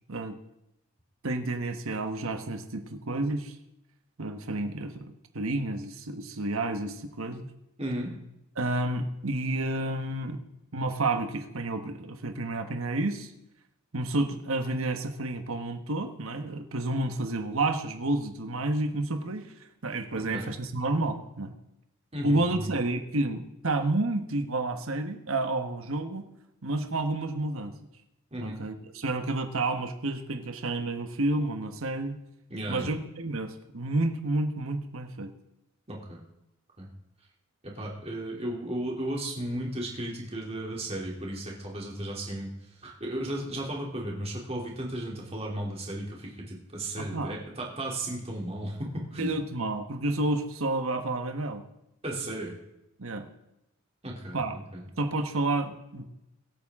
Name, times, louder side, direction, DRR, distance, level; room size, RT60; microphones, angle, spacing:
voice 1, 1.2-3.5 4.2-7.5 8.6-10.4 10.7-13.3 13.9-19.5 19.8-21.5 22.2-26.3 26.6-27.7 28.4-32.2 32.7-35.3 47.0-47.4 49.2-51.6 53.0-53.3 54.3-54.5 55.0-56.1, right 2 dB, 70° right, 7 dB, 1.3 m, -30 dB
voice 2, 7.8-8.1 20.3-20.5 22.1-22.7 28.3-28.6 32.5-32.9 35.9-36.2 36.8-36.9 37.6-42.5 42.8-49.4 52.0-52.5 54.0-54.8, right 1 dB, 30° right, -2 dB, 3.0 m, -35 dB
23.5 x 8.8 x 3.7 m, 0.87 s
head